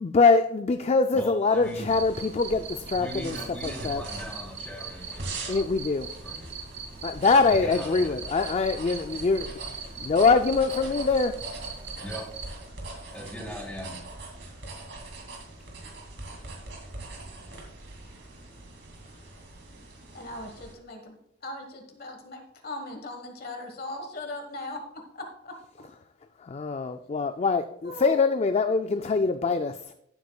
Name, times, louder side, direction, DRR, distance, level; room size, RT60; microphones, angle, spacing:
voice 1, 0.0-3.4 3.6-4.0 5.5-6.1 7.0-9.5 10.0-11.3 26.5-29.9, left 4 dB, 35° left, 8 dB, 0.4 m, -23 dB
voice 2, 1.1-1.9 2.9-5.7 6.2-6.5 7.4-8.2 12.0-12.2 13.1-13.9, equal, 5° left, -2 dB, 3.3 m, -39 dB
sound 1, 1.6-20.7, right 2 dB, 70° right, 2.5 m, -42 dB
Cricket, 1.9-12.5, right 5 dB, 35° right, 2.2 m, -40 dB
voice 3, 20.1-25.6 27.8-28.3, left 2 dB, 55° left, 4 dB, 1.4 m, -39 dB
14.5 x 8.1 x 2.3 m, 0.73 s
head